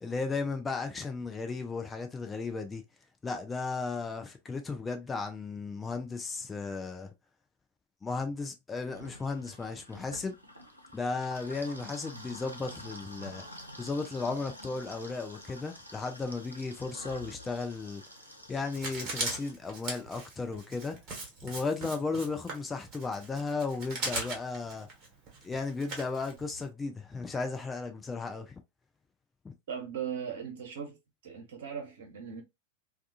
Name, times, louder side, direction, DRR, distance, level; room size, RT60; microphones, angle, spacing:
voice 1, 0.0-2.8 3.2-7.1 8.0-10.4 10.9-13.4 13.8-18.0 18.5-21.0 21.4-24.9 25.4-28.6 29.4-29.5, left 4 dB, 15° left, 0.4 m, -35 dB
sound 1, 8.9-19.5, equal, 90° right, 0.5 m, -48 dB
Writing, 18.7-26.7, right 2 dB, 35° right, 1.1 m, -39 dB
voice 2, 29.7-31.0 31.2-32.4, right 7 dB, 60° right, 0.8 m, -38 dB
2.3 x 2.3 x 2.6 m
figure-of-eight pair, 90°, 0 cm